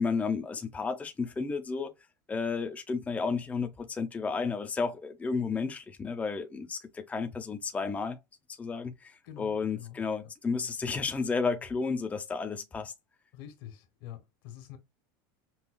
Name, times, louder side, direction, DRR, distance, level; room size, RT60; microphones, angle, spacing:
voice 1, 0.0-1.9 2.3-8.2 8.5-12.9, left 4 dB, 10° left, 0.6 m, -32 dB
voice 2, 9.2-10.0 13.3-14.8, left 11 dB, 70° left, 1.5 m, -46 dB
5.5 x 2.3 x 2.2 m
supercardioid pair, 130°, 12 cm